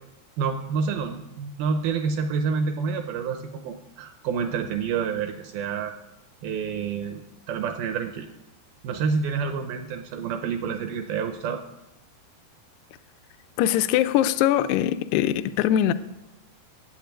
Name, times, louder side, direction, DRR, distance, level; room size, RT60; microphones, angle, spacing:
voice 1, 0.4-5.9 6.4-7.2 7.5-8.3 8.8-11.6, right 5 dB, 80° right, 2.2 m, -28 dB
voice 2, 13.6-15.9, left 11 dB, 80° left, 2.5 m, -22 dB
9.4 x 8.0 x 8.9 m
omnidirectional pair, 4.9 m